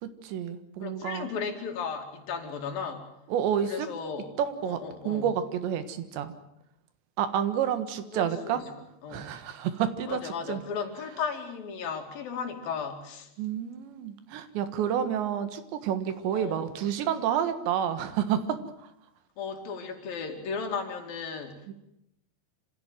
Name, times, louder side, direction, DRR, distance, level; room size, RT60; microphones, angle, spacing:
voice 1, 0.0-1.3 3.3-3.9 4.4-4.8 5.1-6.3 7.2-8.6 9.1-10.6 13.4-18.6 21.7-21.8, right 9 dB, 75° right, 11 dB, 3.7 m, -29 dB
voice 2, 0.8-3.1 3.6-4.3 4.6-5.3 8.1-8.7 9.0-9.3 10.1-13.3 16.3-16.7 19.4-21.7, left 6 dB, 55° left, 5 dB, 4.0 m, -35 dB
26.5 x 16.0 x 9.2 m, 0.80 s
omnidirectional pair, 5.3 m